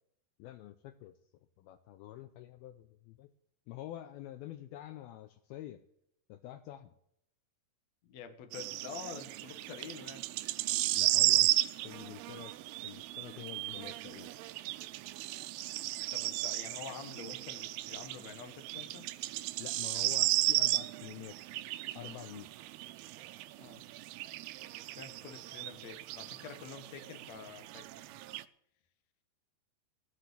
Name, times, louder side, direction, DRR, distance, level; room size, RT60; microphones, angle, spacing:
voice 1, 0.4-1.1 1.6-3.3 3.7-5.8 6.3-6.9 11.0-11.5 11.8-14.3 19.6-21.4 21.9-22.5, left 13 dB, 80° left, 9 dB, 2.3 m, -47 dB
voice 2, 8.0-10.2 12.3-12.5 16.1-19.1 23.6-23.8 25.0-28.1, left 6 dB, 60° left, 6 dB, 2.0 m, -47 dB
sound 1, 8.5-28.4, right 17 dB, 80° right, 2.4 m, -34 dB
16.0 x 6.0 x 8.2 m, 0.75 s
omnidirectional pair, 4.8 m